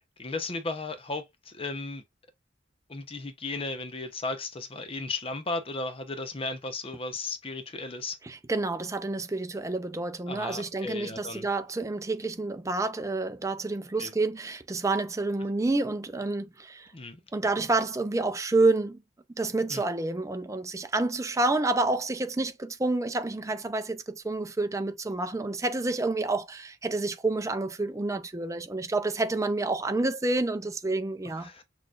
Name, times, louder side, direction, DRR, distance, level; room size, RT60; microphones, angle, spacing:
voice 1, 0.2-2.0 2.9-8.2 10.3-11.5 14.0-14.1 16.9-17.2 17.6-17.7 19.7-19.8 31.4-31.6, left 3 dB, 30° left, 0.8 m, -35 dB
voice 2, 8.2-16.9 17.3-19.0 19.3-31.5, right 2 dB, 15° right, 0.5 m, -29 dB
6.4 x 3.1 x 2.4 m
head